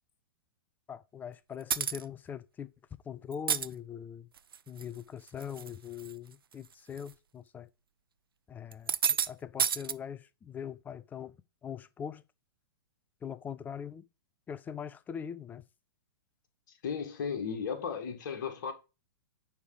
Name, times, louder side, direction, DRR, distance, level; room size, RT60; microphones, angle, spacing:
voice 1, 0.9-2.7 3.1-4.3 4.7-7.7 8.5-8.9 9.3-11.4 11.6-12.2 13.2-14.0 14.5-15.6, left 8 dB, 15° left, 0.5 m, -42 dB
sound 1, 1.7-2.0 3.3-3.7 4.4-4.8 5.3-5.7 6.0-6.1 7.0-7.1 8.7-9.3 9.6-9.9, right 7 dB, 70° right, 0.5 m, -29 dB
voice 2, 16.8-18.7, left 6 dB, 50° left, 1.9 m, -35 dB
9.5 x 3.5 x 4.9 m
figure-of-eight pair, 110°, 12 cm